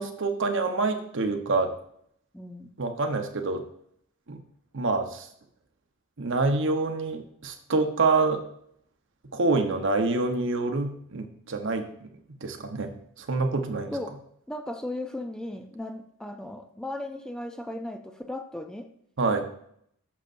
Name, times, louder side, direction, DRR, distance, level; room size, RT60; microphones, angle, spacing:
voice 1, 0.0-1.7 2.8-3.6 4.3-4.4 4.7-5.3 6.2-8.4 9.3-12.1 12.4-13.9 19.2-19.5, right 3 dB, 60° right, 6 dB, 0.9 m, -26 dB
voice 2, 2.3-2.7 13.9-14.2 14.5-18.9, left 1 dB, 5° left, 5 dB, 0.4 m, -36 dB
12.0 x 6.6 x 2.6 m, 0.69 s
head